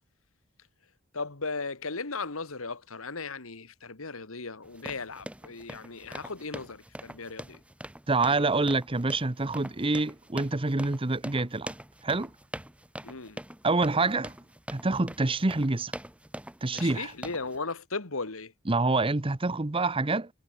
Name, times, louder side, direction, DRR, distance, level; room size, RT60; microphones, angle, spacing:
voice 1, 1.1-7.6 13.0-13.4 16.7-18.5, left 4 dB, 70° left, 1.9 m, -37 dB
sound 1, 4.6-17.6, right 1 dB, 5° right, 2.2 m, -43 dB
voice 2, 8.1-11.7 12.0-12.3 13.6-14.3 14.7-15.9 16.6-17.1 18.7-20.3, right 3 dB, 25° right, 0.9 m, -26 dB
head